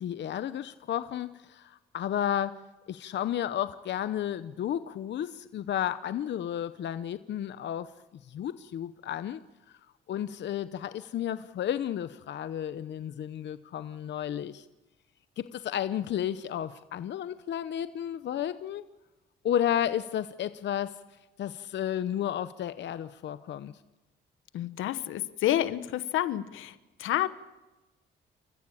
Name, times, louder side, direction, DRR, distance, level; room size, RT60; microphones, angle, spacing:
voice 1, 0.0-2.6 2.9-7.9 8.2-9.4 10.1-14.6 15.4-18.8 19.4-21.0 21.4-23.8, left 10 dB, 65° left, 13 dB, 0.9 m, -32 dB
voice 2, 24.5-27.3, left 13 dB, 85° left, 14 dB, 1.1 m, -29 dB
28.5 x 14.5 x 8.6 m, 1.1 s
cardioid pair, 90°, 20 cm